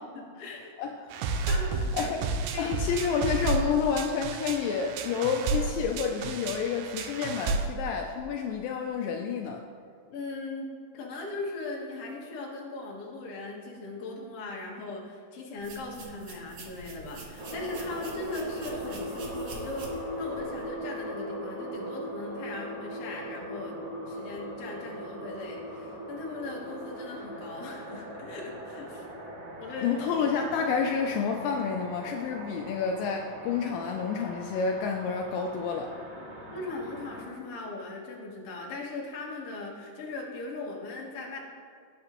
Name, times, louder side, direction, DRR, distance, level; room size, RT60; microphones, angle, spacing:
voice 1, 0.1-0.7 1.5-2.1 2.5-3.1 10.1-23.8 24.1-29.1 29.6-30.0 36.5-41.4, left 2 dB, 55° left, -2 dB, 2.0 m, -39 dB
voice 2, 0.8-1.1 1.9-2.2 2.6-9.6 29.8-35.9, left 6 dB, 80° left, 2 dB, 2.2 m, -29 dB
sound 1, 1.1-7.7, right 4 dB, 85° right, 2.5 m, -31 dB
sound 2, 15.6-20.7, right 3 dB, 65° right, 1.5 m, -46 dB
sound 3, 17.4-37.2, equal, 45° right, 2.8 m, -40 dB
17.0 x 5.9 x 3.0 m, 2.2 s
omnidirectional pair, 4.1 m